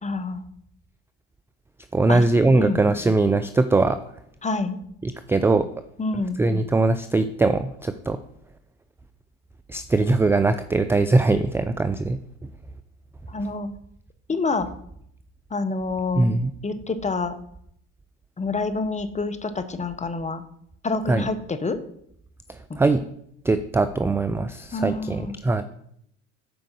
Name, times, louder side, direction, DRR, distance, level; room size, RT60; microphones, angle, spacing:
voice 1, 0.0-0.4 2.1-2.2 2.5-2.8 4.4-4.8 6.0-6.4 13.3-13.7 14.3-14.7 15.5-16.3 16.6-17.3 18.4-20.4 20.8-21.8 22.7-22.8 24.7-25.4, left 3 dB, 20° left, 10 dB, 0.9 m, -27 dB
voice 2, 1.9-4.0 5.0-5.7 6.4-8.2 9.7-12.2 16.2-16.5 21.1-21.3 22.5-23.0 23.4-25.6, right 3 dB, 5° right, 10 dB, 0.3 m, -21 dB
7.9 x 5.1 x 6.2 m, 0.71 s
hypercardioid pair, 75°, 36 cm